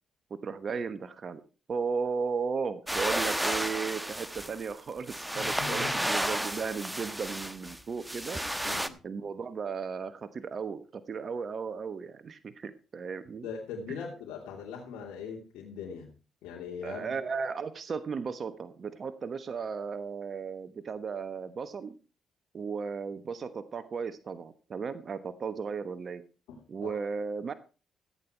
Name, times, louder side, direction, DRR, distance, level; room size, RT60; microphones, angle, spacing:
voice 1, 0.3-1.4 1.7-8.4 9.0-13.5 13.9-14.0 16.8-21.9 22.5-26.2 26.7-27.5, right 5 dB, 50° right, 11 dB, 1.1 m, -35 dB
sound 1, 2.9-8.9, right 1 dB, 5° right, 1.1 m, -32 dB
voice 2, 5.3-6.1 8.6-8.9 13.4-16.1 16.4-17.1 26.5-27.0, left 6 dB, 90° left, -3 dB, 2.9 m, -40 dB
15.0 x 8.9 x 4.5 m, 0.34 s
supercardioid pair, 65°, 0 cm